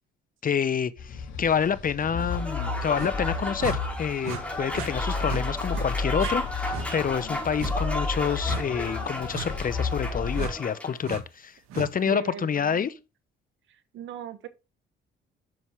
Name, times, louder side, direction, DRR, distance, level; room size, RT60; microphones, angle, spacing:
voice 1, 0.4-12.9, left 7 dB, 40° left, 0.8 m, -28 dB
sound 1, 1.0-10.5, left 4 dB, 70° left, 2.2 m, -32 dB
Applause / Crowd, 2.2-11.0, left 1 dB, 5° left, 4.9 m, -34 dB
sound 2, 2.9-3.1 3.6-3.8 4.2-4.4 4.7-4.9 5.2-5.4 5.7-5.9 6.2-6.3 6.7-6.9 7.6-7.7 8.5-8.6 9.3-9.5 10.3-10.5 11.0-11.2 11.7-11.9, right 7 dB, 85° right, 1.7 m, -35 dB
voice 2, 12.0-13.0 13.7-14.5, right 9 dB, 70° right, 1.3 m, -39 dB
7.9 x 7.1 x 3.5 m
supercardioid pair, 65°, 21 cm